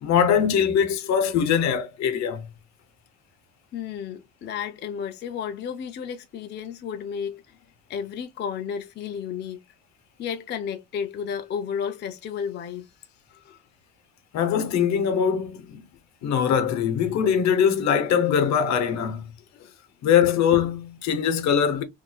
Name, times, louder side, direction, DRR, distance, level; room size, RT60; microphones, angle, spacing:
voice 1, 0.0-2.5 14.3-15.8 16.2-19.3 20.0-21.8, left 8 dB, 50° left, 0.8 m, -22 dB
voice 2, 3.7-7.6 7.9-9.6 10.2-13.0 13.3-13.6 19.5-19.7, left 7 dB, 30° left, 0.4 m, -32 dB
4.2 x 2.6 x 2.2 m
cardioid pair, 145°, 35 cm